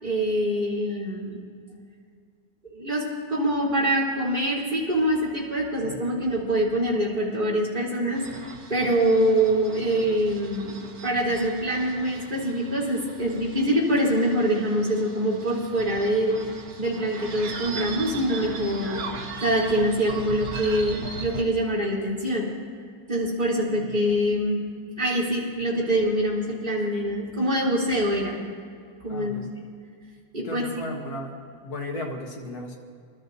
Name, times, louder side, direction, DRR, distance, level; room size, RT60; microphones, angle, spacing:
voice 1, 0.0-1.4 2.7-8.4 8.7-10.8 11.0-16.4 16.8-19.0 19.4-22.5 23.1-24.6 25.0-28.4 29.0-29.4 30.3-30.9, right 1 dB, 25° right, -7 dB, 3.7 m, -24 dB
voice 2, 5.8-6.1 23.6-23.9 29.1-29.5 30.4-31.3 31.6-32.8, left 1 dB, 50° left, 0 dB, 2.0 m, -35 dB
sound 1, 8.1-21.4, right 4 dB, 55° right, 1.6 m, -39 dB
26.0 x 13.0 x 2.7 m, 2.2 s
omnidirectional pair, 2.1 m